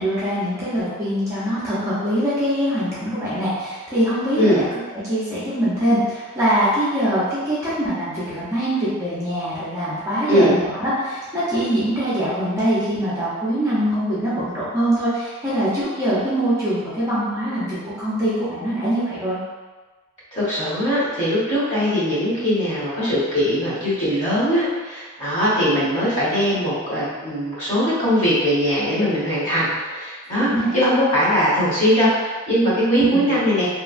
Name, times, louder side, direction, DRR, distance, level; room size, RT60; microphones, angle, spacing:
voice 1, 0.0-4.7 5.1-19.4 30.3-30.7 32.9-33.3, equal, 15° right, -11 dB, 0.6 m, -23 dB
voice 2, 20.3-33.7, equal, 35° left, -10 dB, 1.1 m, -20 dB
3.0 x 2.2 x 2.4 m, 1.3 s
head